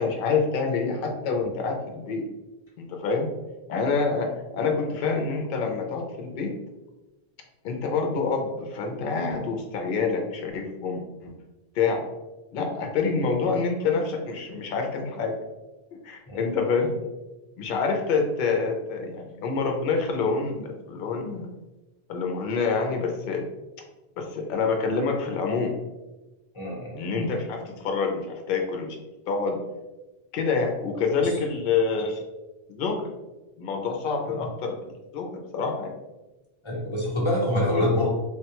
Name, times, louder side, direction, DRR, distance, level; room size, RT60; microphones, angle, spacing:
voice 1, 0.0-2.3 2.8-3.3 3.7-6.5 7.6-11.3 11.7-12.0 12.5-15.3 16.0-17.0 17.6-21.5 22.1-23.4 24.2-25.8 27.0-29.0 29.3-29.6 30.3-32.2 32.7-33.1 33.6-35.9, left 4 dB, 65° left, 3 dB, 0.7 m, -27 dB
voice 2, 26.5-27.0 31.2-31.3 36.6-38.1, left 1 dB, 30° left, -5 dB, 0.9 m, -25 dB
3.4 x 2.2 x 2.8 m, 1.1 s
omnidirectional pair, 1.0 m